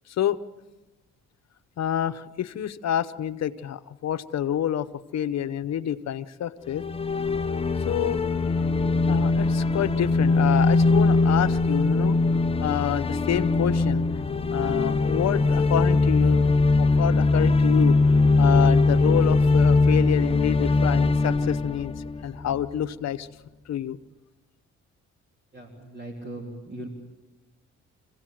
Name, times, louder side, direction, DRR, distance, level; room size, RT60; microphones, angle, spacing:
voice 1, 0.1-0.4 1.8-4.9 5.1-6.8 7.9-8.6 9.1-12.2 12.6-14.0 14.5-18.0 18.4-21.9 22.2-23.3 23.7-24.0, left 10 dB, 60° left, 11 dB, 1.0 m, -28 dB
sound 1, 6.7-22.8, left 3 dB, 20° left, 0.7 m, -21 dB
voice 2, 25.5-26.9, right 1 dB, 35° right, 0 dB, 3.4 m, -39 dB
26.0 x 16.5 x 7.7 m, 1.1 s
cardioid pair, 90°, 30 cm